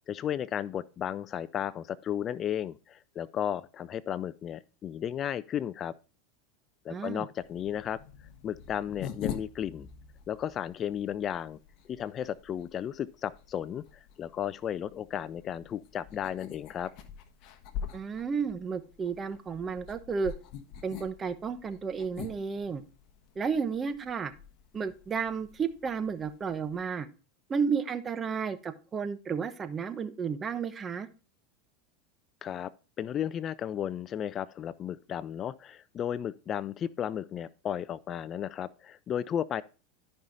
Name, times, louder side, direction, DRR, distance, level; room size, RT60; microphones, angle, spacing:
voice 1, 0.1-5.9 6.8-8.0 8.4-9.9 10.3-11.6 11.9-13.8 14.2-16.9 32.4-32.7 33.0-39.6, left 9 dB, 35° left, 0.4 m, -34 dB
voice 2, 6.9-7.3 17.9-20.3 20.8-22.8 23.4-24.3 24.7-27.1 27.5-31.1, right 6 dB, 25° right, 0.9 m, -32 dB
sound 1, 7.4-26.9, left 8 dB, 55° left, 1.2 m, -46 dB
14.0 x 5.5 x 2.5 m
supercardioid pair, 115°, 0 cm